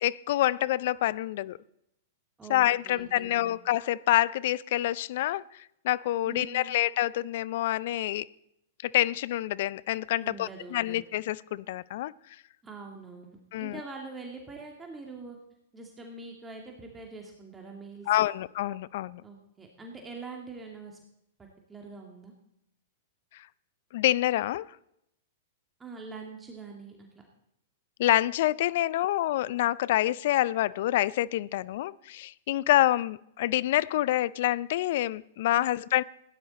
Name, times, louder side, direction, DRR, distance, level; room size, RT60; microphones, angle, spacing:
voice 1, 0.0-1.6 2.5-8.3 8.8-12.1 13.5-13.8 18.1-19.2 23.9-24.7 28.0-36.0, left 14 dB, 60° left, 21 dB, 0.4 m, -27 dB
voice 2, 2.4-3.6 6.2-6.8 10.2-11.0 12.6-15.4 15.7-18.3 19.2-21.0 21.4-22.3 25.8-27.2 35.6-35.7, right 4 dB, 15° right, 1 dB, 2.3 m, -44 dB
17.0 x 10.5 x 4.1 m, 0.78 s
hypercardioid pair, 105°, 0 cm